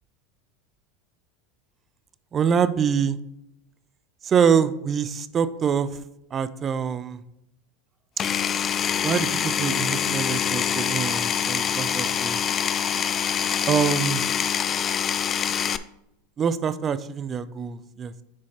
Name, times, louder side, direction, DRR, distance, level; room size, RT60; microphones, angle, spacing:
voice 1, 2.3-3.2 4.2-6.0 6.3-7.2 9.0-12.4 13.7-14.2 16.4-18.1, right 7 dB, 30° right, 15 dB, 0.5 m, -25 dB
Power tool, 8.2-15.8, left 8 dB, 35° left, 0.4 m, -25 dB
10.5 x 4.6 x 2.9 m, 0.84 s
hypercardioid pair, 95°, 0 cm